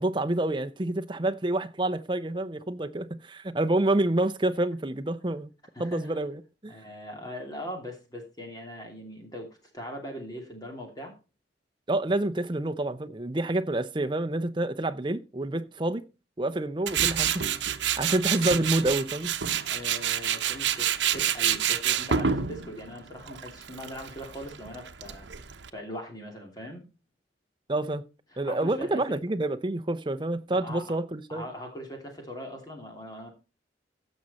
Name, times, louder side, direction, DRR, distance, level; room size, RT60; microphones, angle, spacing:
voice 1, 0.0-5.5 5.8-6.8 11.9-16.1 16.4-17.7 18.0-19.3 27.7-28.0 28.4-31.5, right 1 dB, 25° right, 0.7 m, -28 dB
voice 2, 5.7-6.2 6.7-11.1 19.6-26.8 28.3-29.0 30.5-31.0 31.3-33.3, equal, 20° left, 2.8 m, -41 dB
Tools, 16.9-25.7, right 9 dB, 75° right, 0.9 m, -28 dB
15.5 x 6.4 x 4.2 m
head